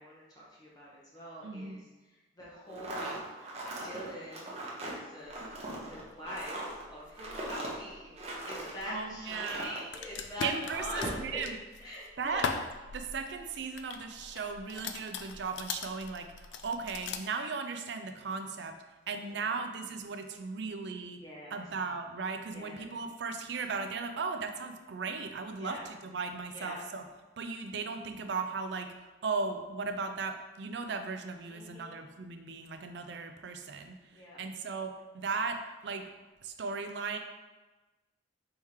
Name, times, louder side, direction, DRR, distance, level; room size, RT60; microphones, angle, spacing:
voice 1, 0.0-3.2 3.8-4.6 4.8-5.4 5.9-8.1 8.5-11.4 11.8-12.6 19.1-19.4 21.2-21.6 22.5-22.9 25.5-25.8 26.5-26.8 31.5-32.0 34.1-34.4, equal, 20° left, -6 dB, 0.8 m, -43 dB
voice 2, 1.4-1.8 8.9-9.8 10.4-11.5 12.2-12.5 12.9-18.8 19.1-21.2 21.5-27.1 27.4-28.9 29.2-36.0 36.4-37.2, right 4 dB, 65° right, 6 dB, 0.4 m, -37 dB
sound 1, 2.7-8.8 9.2-9.8, right 1 dB, 35° right, 0.7 m, -40 dB
sound 2, 5.3-17.2, left 5 dB, 70° left, 0.3 m, -42 dB
4.2 x 3.6 x 3.2 m, 1.2 s
head